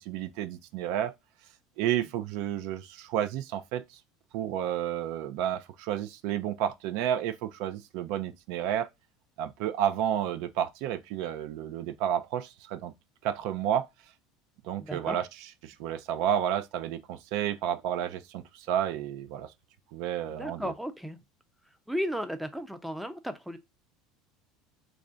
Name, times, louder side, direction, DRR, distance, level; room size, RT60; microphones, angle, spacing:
voice 1, 0.1-1.1 1.8-4.0 4.3-8.9 9.4-12.9 13.2-13.8 14.6-15.3 15.6-19.5 19.9-20.7, right 10 dB, 65° right, 0.4 m, -31 dB
voice 2, 14.8-15.2 20.3-21.2 21.9-23.6, equal, ahead, 0.5 m, -34 dB
3.2 x 2.4 x 3.8 m
supercardioid pair, 135°, 0 cm